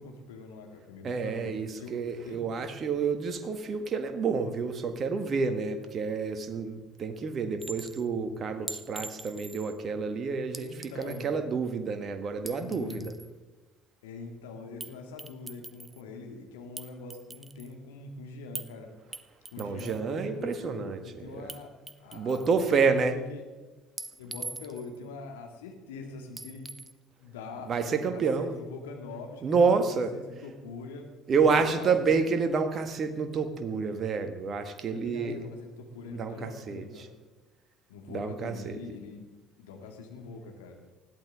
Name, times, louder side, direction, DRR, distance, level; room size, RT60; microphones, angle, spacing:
voice 1, 0.0-1.9 2.2-2.4 8.7-8.9 10.6-11.3 12.6-13.1 14.0-18.9 19.5-21.7 22.0-23.4 24.2-26.7 27.2-31.1 31.3-32.2 34.9-37.0 37.9-39.3 39.6-40.8, left 4 dB, 75° left, 2 dB, 2.3 m, -43 dB
voice 2, 1.0-13.1 19.6-21.0 21.3-21.5 22.1-23.2 27.7-28.5 29.4-30.1 31.3-35.4 36.1-36.8 38.1-38.8, right 5 dB, 40° right, 8 dB, 1.8 m, -29 dB
Chink clink, 7.6-8.0 8.7-9.8 10.5-11.3 12.3-13.3 14.8-14.9 15.2-16.0 16.8-17.7 18.5-18.7 19.1-20.0 21.5-21.6 21.9-22.7 24.0-25.0 26.4-26.9, right 2 dB, 15° right, 1.0 m, -42 dB
20.5 x 14.5 x 3.7 m, 1.2 s
figure-of-eight pair, 55°, 0 cm